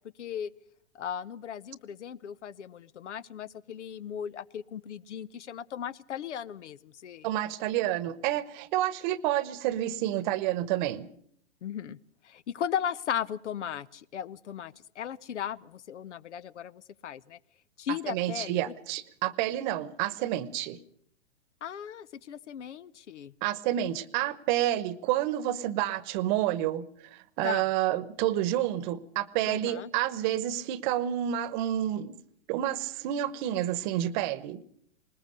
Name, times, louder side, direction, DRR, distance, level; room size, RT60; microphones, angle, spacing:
voice 1, 0.2-0.5 0.9-7.3 11.6-12.0 12.2-17.4 17.8-18.7 21.6-23.3 27.4-27.7 29.4-29.9, left 9 dB, 80° left, 0.8 m, -37 dB
voice 2, 7.2-11.1 18.1-20.8 23.4-32.2 32.5-34.6, right 13 dB, 40° right, 1.1 m, -29 dB
20.0 x 20.0 x 6.6 m
hypercardioid pair, 125°, 35 cm